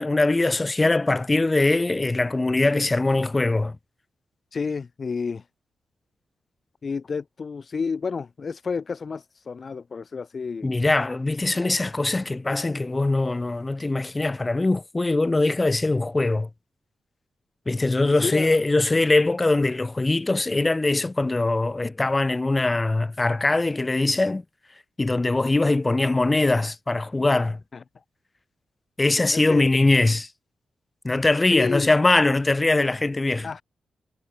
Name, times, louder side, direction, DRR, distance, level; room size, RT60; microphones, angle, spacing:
voice 1, 0.0-3.8 10.6-16.5 17.7-24.4 25.0-27.6 29.0-30.3 31.0-33.5, left 2 dB, 30° left, 0.8 m, -22 dB
voice 2, 4.5-5.5 6.8-10.7 18.1-18.6 27.7-27.8 29.3-29.6 31.5-31.9 33.4-33.6, left 5 dB, 55° left, 0.3 m, -30 dB
supercardioid pair, 40°, 0 cm